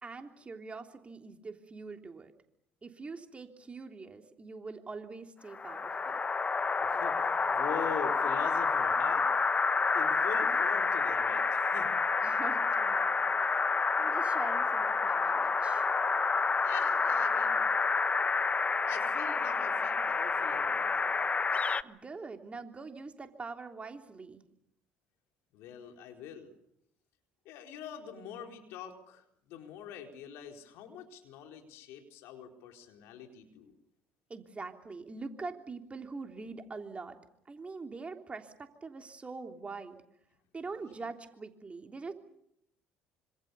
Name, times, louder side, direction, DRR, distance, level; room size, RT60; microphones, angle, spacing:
voice 1, 0.0-2.3 2.8-6.2 12.2-13.5 14.0-15.9 21.8-24.4 34.3-37.2 37.5-40.0 40.5-42.1, right 4 dB, 25° right, 5 dB, 3.4 m, -44 dB
sound 1, 5.5-21.8, left 4 dB, 30° left, 1.2 m, -29 dB
voice 2, 6.8-9.3 9.9-12.0 16.6-17.6 18.9-21.3 25.5-26.5 27.4-33.8, left 8 dB, 70° left, 4 dB, 4.2 m, -44 dB
27.0 x 26.0 x 7.0 m, 0.76 s
hypercardioid pair, 60°, 4 cm